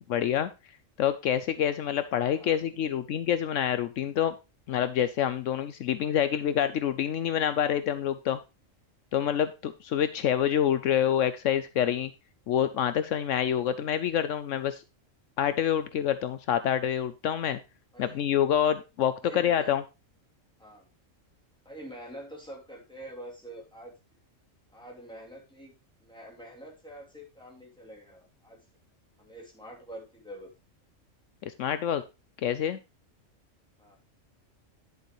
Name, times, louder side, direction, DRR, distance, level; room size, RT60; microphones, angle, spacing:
voice 1, 0.1-0.5 1.0-4.3 4.7-8.4 9.1-12.1 12.5-14.8 15.4-17.6 18.0-19.8 31.4-32.0 32.4-32.8, left 9 dB, 75° left, 12 dB, 1.0 m, -27 dB
voice 2, 2.3-3.1 17.9-18.2 19.2-19.8 20.6-20.9 21.6-23.9 24.7-25.7 26.0-28.6 29.2-30.5 33.8-34.0, right 1 dB, 5° left, -2 dB, 3.0 m, -46 dB
10.5 x 6.8 x 3.2 m, 0.27 s
omnidirectional pair, 1.3 m